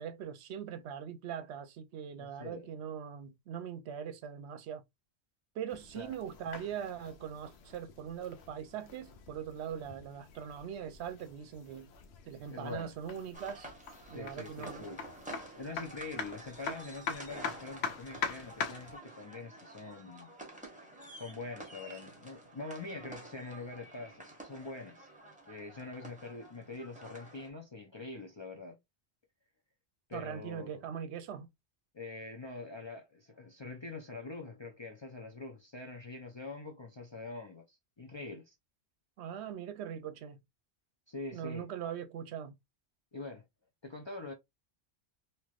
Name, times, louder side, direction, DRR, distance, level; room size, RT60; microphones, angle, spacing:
voice 1, 0.0-4.8 5.5-11.9 12.3-13.7 14.1-14.9 30.1-31.5 39.2-40.4 41.3-42.6, right 8 dB, 80° right, 0.9 m, -41 dB
voice 2, 2.2-2.7 5.9-6.1 12.5-12.9 14.1-15.0 15.5-20.3 21.2-25.1 25.5-28.8 30.1-30.9 31.9-38.5 41.1-41.7 43.1-43.4 43.8-44.3, left 3 dB, 40° left, 0.4 m, -44 dB
sound 1, 5.7-19.0, left 6 dB, 75° left, 0.9 m, -44 dB
sound 2, 13.3-27.5, right 1 dB, 10° right, 0.9 m, -50 dB
3.2 x 2.9 x 2.3 m
omnidirectional pair, 1.1 m